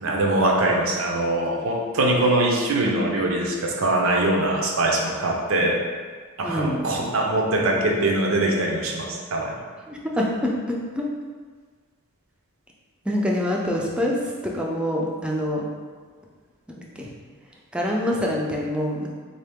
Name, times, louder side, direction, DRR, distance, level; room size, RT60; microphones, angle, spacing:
voice 1, 0.0-5.8 6.4-9.6, right 2 dB, 70° right, 0 dB, 0.7 m, -22 dB
voice 2, 6.4-7.0 9.9-11.1 13.0-15.7 16.7-17.1 17.7-19.1, equal, 5° right, -2 dB, 0.4 m, -26 dB
3.9 x 2.8 x 3.4 m, 1.5 s
head